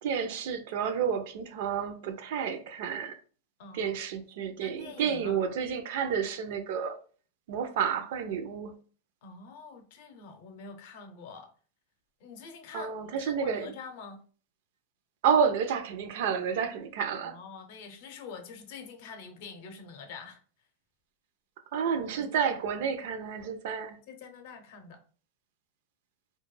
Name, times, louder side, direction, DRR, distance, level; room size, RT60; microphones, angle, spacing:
voice 1, 0.0-3.2 3.7-7.0 7.5-8.8 12.7-13.7 15.2-17.4 21.7-24.0, right 7 dB, 70° right, 0.4 m, -30 dB
voice 2, 3.6-4.0 4.6-5.4 9.2-11.5 12.2-14.2 17.2-20.4 22.1-22.8 24.1-25.0, left 5 dB, 60° left, 0.6 m, -46 dB
2.2 x 2.1 x 3.1 m
supercardioid pair, 135°, 0 cm